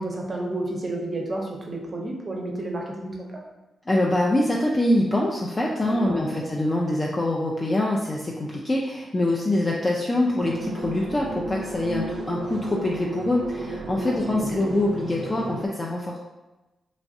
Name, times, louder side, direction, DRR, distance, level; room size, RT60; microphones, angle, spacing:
voice 1, 0.0-3.4 5.9-6.5 14.1-14.2 14.6-14.7, right 2 dB, 35° right, 0 dB, 0.6 m, -31 dB
voice 2, 3.9-16.2, left 1 dB, 25° left, -2 dB, 0.3 m, -24 dB
sound 1, 10.4-15.7, right 2 dB, 75° right, 0.4 m, -33 dB
3.0 x 2.4 x 2.6 m, 1.1 s
cardioid pair, 90°, 0 cm